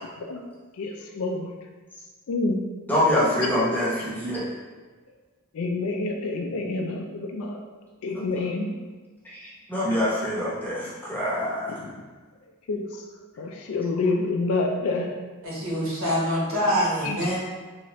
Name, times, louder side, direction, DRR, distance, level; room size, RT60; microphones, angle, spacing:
voice 1, 0.8-1.5 2.3-2.6 5.5-7.6 8.0-8.7 11.8-11.9 12.7-13.0 13.4-15.2 17.0-17.3, left 3 dB, 80° left, 2 dB, 0.4 m, -28 dB
voice 2, 2.9-4.5 8.1-8.3 9.2-11.8, left 1 dB, 10° left, -7 dB, 0.8 m, -25 dB
voice 3, 15.4-17.4, equal, 75° right, -6 dB, 1.2 m, -25 dB
3.6 x 3.0 x 3.0 m, 1.3 s
head